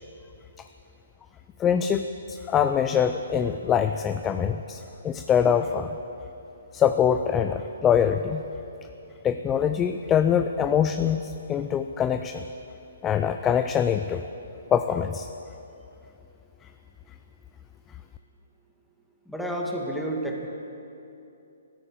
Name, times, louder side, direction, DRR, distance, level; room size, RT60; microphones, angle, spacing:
voice 1, 1.6-6.0 6.7-8.4 9.2-12.4 13.0-14.2 14.7-15.3, left 8 dB, 15° left, 9 dB, 0.5 m, -24 dB
voice 2, 19.3-20.5, right 1 dB, ahead, -1 dB, 1.9 m, -30 dB
14.0 x 13.5 x 7.6 m, 2.8 s
hypercardioid pair, 135°, 0 cm